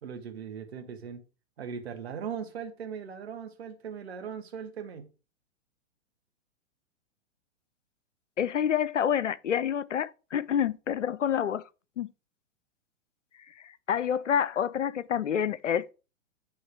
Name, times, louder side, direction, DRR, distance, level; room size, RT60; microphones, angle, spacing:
voice 1, 0.0-1.2 1.6-5.1, right 7 dB, 55° right, 1.4 m, -39 dB
voice 2, 8.4-11.6 12.0-12.1 13.5-15.9, left 8 dB, 75° left, 0.5 m, -28 dB
9.0 x 3.2 x 4.6 m
figure-of-eight pair, 105°, 37 cm